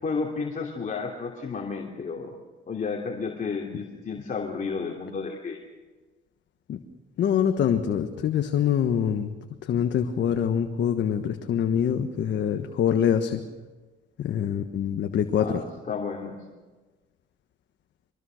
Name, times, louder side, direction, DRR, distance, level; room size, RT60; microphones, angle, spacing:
voice 1, 0.0-2.3 2.7-5.6 15.4-16.4, left 5 dB, 40° left, 0 dB, 2.9 m, -32 dB
voice 2, 7.2-9.3 9.6-13.4 14.2-15.6, left 8 dB, 65° left, 6 dB, 1.4 m, -25 dB
24.0 x 20.0 x 6.5 m, 1.3 s
supercardioid pair, 70°, 20 cm